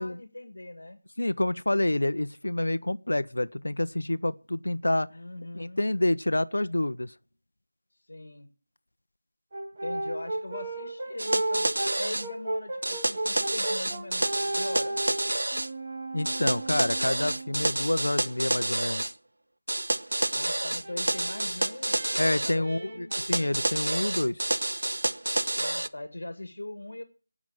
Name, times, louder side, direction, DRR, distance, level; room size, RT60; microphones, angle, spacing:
voice 1, 0.0-1.0 5.1-5.8 7.9-8.5 9.8-15.0 20.3-21.9 22.3-23.1 25.6-27.0, left 1 dB, 60° left, 1.8 m, -41 dB
voice 2, 1.2-5.1 5.5-7.1 16.1-19.0 22.2-24.4, left 1 dB, 80° left, 0.8 m, -28 dB
Brass instrument, 9.5-17.8 20.3-24.0, right 1 dB, 25° right, 1.5 m, -35 dB
sound 1, 11.2-12.3 12.8-15.7 16.2-19.1 19.7-22.6 23.1-25.9, right 1 dB, 80° right, 1.0 m, -29 dB
18.5 x 6.1 x 7.9 m
figure-of-eight pair, 180°, 0 cm